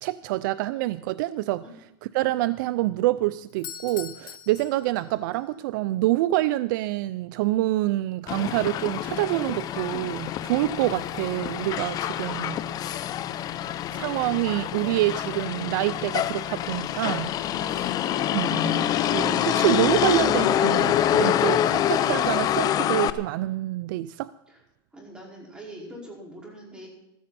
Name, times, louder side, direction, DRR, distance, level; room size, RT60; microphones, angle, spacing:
voice 1, 0.0-1.6 2.1-12.6 13.9-17.3 17.8-17.9 18.3-24.3, right 16 dB, 60° right, 15 dB, 0.5 m, -26 dB
Doorbell, 3.5-5.4, left 10 dB, 70° left, 1.7 m, -41 dB
Motor vehicle (road), 8.3-23.1, left 11 dB, 30° left, 0.7 m, -26 dB
voice 2, 24.9-26.9, right 1 dB, 10° right, -2 dB, 5.1 m, -43 dB
15.0 x 14.0 x 4.2 m, 0.90 s
supercardioid pair, 135°, 12 cm